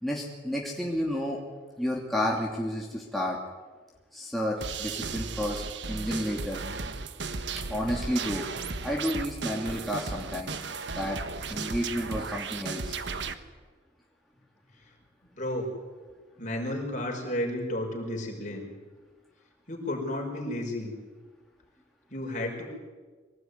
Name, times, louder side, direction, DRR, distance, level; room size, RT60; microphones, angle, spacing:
voice 1, 0.0-1.4 1.8-3.4 4.1-5.6 5.9-6.6 7.7-8.5 8.8-10.5 11.0-11.2 11.5-13.0, equal, ahead, -3 dB, 2.8 m, -31 dB
sound 1, 4.6-13.3, right 4 dB, 75° right, 1.4 m, -35 dB
voice 2, 15.3-15.7 16.4-18.7 19.7-20.9 22.1-22.6, left 1 dB, 40° left, 1 dB, 5.6 m, -32 dB
24.0 x 18.5 x 9.6 m, 1.4 s
head